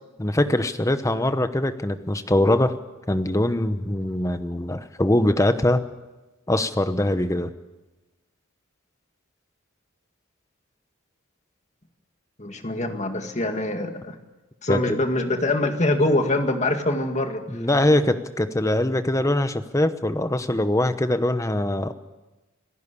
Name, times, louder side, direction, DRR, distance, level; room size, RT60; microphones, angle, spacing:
voice 1, 0.2-2.8 3.1-5.8 6.5-7.5 14.7-15.0 17.5-21.9, left 1 dB, 15° left, 10 dB, 1.0 m, -22 dB
voice 2, 12.4-14.2 14.6-17.4, left 2 dB, 35° left, 5 dB, 2.1 m, -24 dB
26.5 x 15.0 x 8.5 m, 1.1 s
head